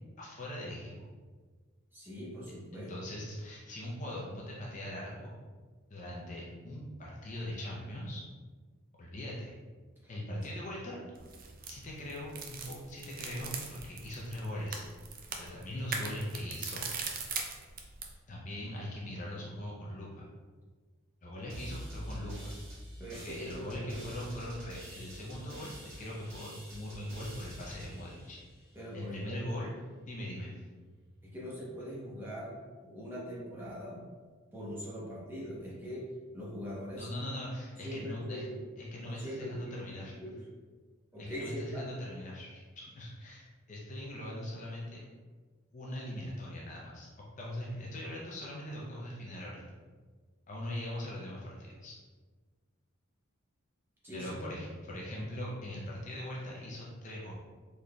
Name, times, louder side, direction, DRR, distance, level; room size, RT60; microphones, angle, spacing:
voice 1, 0.2-1.1 2.7-5.3 5.9-8.2 9.0-9.5 10.1-11.0 11.7-14.8 15.3-16.9 18.3-20.3 21.2-22.5 23.1-28.4 28.9-29.7 30.1-30.6 36.9-38.4 38.8-40.1 41.2-45.0 45.7-49.6 50.5-51.9 54.1-57.3, left 1 dB, 35° left, -4 dB, 0.5 m, -41 dB
voice 2, 1.9-3.1 10.0-10.1 23.0-24.2 28.7-29.4 31.2-32.6 32.8-34.0 34.5-37.1 37.8-38.6 39.0-40.4 41.1-41.9 54.0-54.6, equal, 10° right, -7 dB, 0.8 m, -42 dB
sound 1, 11.2-18.1, right 5 dB, 40° right, 0.3 m, -41 dB
sound 2, 21.5-29.0, equal, 60° right, 1.3 m, -47 dB
3.9 x 3.2 x 2.2 m, 1.4 s
head